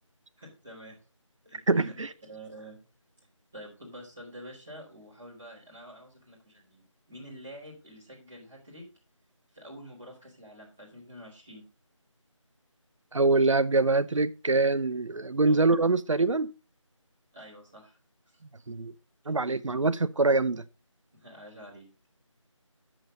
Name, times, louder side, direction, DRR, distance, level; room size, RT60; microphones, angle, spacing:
voice 1, 0.4-1.0 1.4-1.9 2.3-2.8 3.5-8.8 9.5-11.6 15.4-15.6 17.3-18.0 18.2-18.4 19.2-19.3 21.1-21.9, equal, ahead, 0.6 m, -47 dB
voice 2, 1.7-2.1 13.1-16.5 18.7-18.9 19.3-20.6, right 3 dB, 70° right, 0.7 m, -24 dB
9.4 x 7.7 x 3.9 m
figure-of-eight pair, 170°, 17 cm